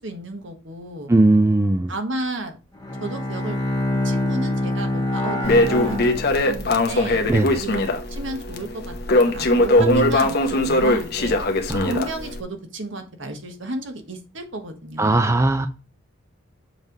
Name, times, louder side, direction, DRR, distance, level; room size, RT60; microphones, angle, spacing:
voice 1, 0.0-1.1 1.9-2.6 3.0-3.6 4.0-7.2 7.6-7.8 8.1-11.4 11.8-15.2, right 2 dB, 65° right, 5 dB, 1.4 m, -33 dB
voice 2, 1.1-1.9 7.3-7.6 9.8-10.2 10.7-10.8 11.7-12.0 15.0-15.7, right 2 dB, 15° right, 9 dB, 0.4 m, -19 dB
Bowed string instrument, 2.8-6.9, left 1 dB, 20° left, 1.4 m, -25 dB
Crackle, 5.4-12.4, left 1 dB, 50° left, 1.0 m, -20 dB
7.3 x 3.3 x 5.3 m, 0.32 s
head